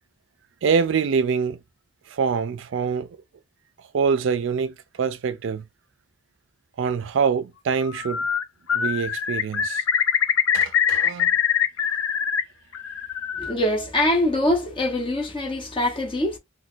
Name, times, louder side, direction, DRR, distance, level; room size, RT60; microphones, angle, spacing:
voice 1, 0.6-1.6 2.1-3.1 3.9-5.6 6.8-8.2 8.7-9.8 10.5-11.3, right 6 dB, 65° right, 0.3 m, -25 dB
Bird, 7.9-8.4 8.7-12.4 12.7-13.5, left 8 dB, 80° left, 0.5 m, -23 dB
voice 2, 13.4-16.4, left 1 dB, 25° left, 0.8 m, -23 dB
3.9 x 2.2 x 2.4 m
head